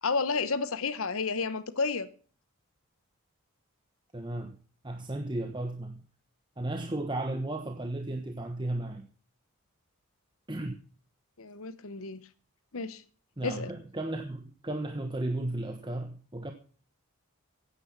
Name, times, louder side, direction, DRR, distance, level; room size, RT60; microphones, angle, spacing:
voice 1, 0.0-2.1 11.4-12.2 12.7-13.0 13.4-13.7, left 4 dB, 70° left, 0.9 m, -31 dB
voice 2, 4.1-4.5 4.8-6.0 6.6-9.0 10.5-10.7 13.4-16.5, right 1 dB, 20° right, 1.2 m, -34 dB
15.5 x 9.8 x 5.9 m
head